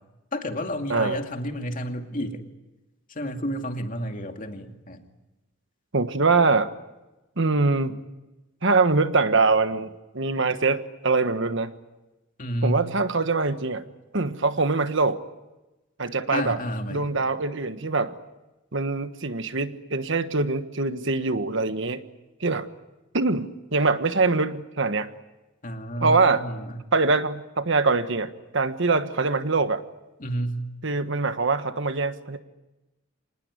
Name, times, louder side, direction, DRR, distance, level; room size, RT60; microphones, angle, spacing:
voice 1, 0.3-2.5 3.1-5.1 12.4-12.8 16.3-17.1 25.6-26.8 30.2-30.6, equal, 40° left, 4 dB, 2.5 m, -30 dB
voice 2, 5.9-6.7 7.4-8.0 8.6-11.7 12.6-13.8 14.1-15.2 16.0-16.6 16.9-18.1 18.7-22.0 22.4-22.7 23.1-25.1 26.0-26.4 26.9-29.8 30.8-32.4, right 3 dB, 65° right, 10 dB, 1.4 m, -23 dB
26.0 x 19.5 x 9.8 m, 1.0 s
head